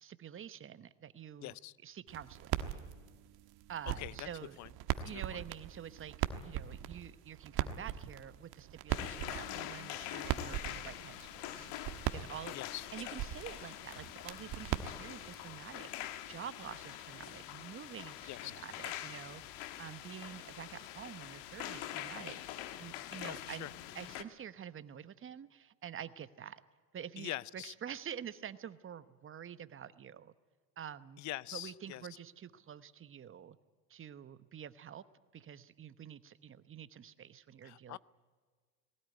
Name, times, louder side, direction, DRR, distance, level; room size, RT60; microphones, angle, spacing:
voice 1, 0.0-1.5 1.8-2.6 3.7-4.6 5.0-11.7 12.1-12.6 12.9-15.9 16.3-22.4 22.8-23.7 23.9-26.6 26.9-30.3 30.8-31.2 31.5-33.6 33.9-35.0 35.3-38.0, right 9 dB, 25° right, 14 dB, 1.0 m, -47 dB
voice 2, 1.4-1.7 4.0-4.3 4.6-4.7 5.1-5.4 12.5-13.2 18.3-18.6 23.2-23.7 27.2-27.7 31.2-32.0 37.6-38.0, left 16 dB, 40° left, 22 dB, 0.6 m, -44 dB
sound 1, 2.1-15.5, right 12 dB, 55° right, 1.5 m, -41 dB
sound 2, 8.9-24.2, left 13 dB, 65° left, 1.4 m, -45 dB
19.5 x 18.0 x 9.6 m, 1.5 s
hypercardioid pair, 95°, 46 cm